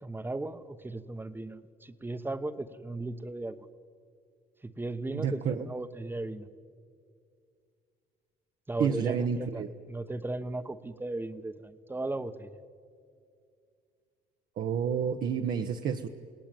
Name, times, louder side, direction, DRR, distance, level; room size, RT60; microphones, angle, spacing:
voice 1, 0.0-3.7 4.6-6.5 8.7-12.6, right 2 dB, 10° right, 11 dB, 1.1 m, -36 dB
voice 2, 5.1-5.7 8.8-9.7 14.6-16.1, right 7 dB, 60° right, 4 dB, 1.2 m, -29 dB
29.5 x 18.0 x 9.2 m, 2.3 s
cardioid pair, 110°, 17 cm